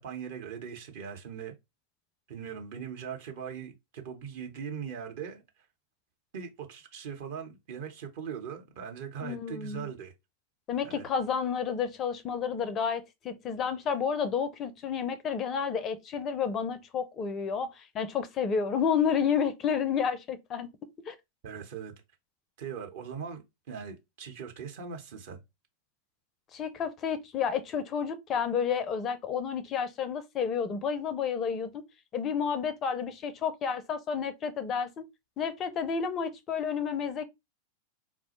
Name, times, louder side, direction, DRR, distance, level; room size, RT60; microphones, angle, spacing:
voice 1, 0.0-1.5 2.3-5.4 6.3-10.1 10.8-11.0 21.4-21.9 22.6-25.4, right 7 dB, 50° right, 0.8 m, -40 dB
voice 2, 9.2-9.9 10.7-20.7 21.1-21.2 26.5-31.8 32.1-35.1 35.4-37.2, left 7 dB, 30° left, 0.4 m, -30 dB
4.2 x 2.1 x 2.8 m
figure-of-eight pair, 90°, 0 cm